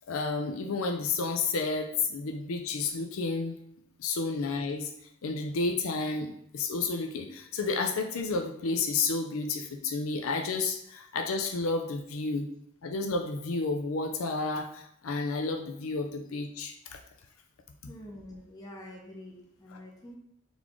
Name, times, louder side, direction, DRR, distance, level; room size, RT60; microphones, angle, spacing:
voice 1, 0.1-3.6 4.0-4.9 5.2-12.5 12.8-17.0 19.7-19.8, left 3 dB, 80° left, 4 dB, 0.5 m, -31 dB
voice 2, 17.9-20.2, left 1 dB, 20° left, -2 dB, 0.7 m, -46 dB
4.0 x 3.6 x 3.1 m, 0.72 s
head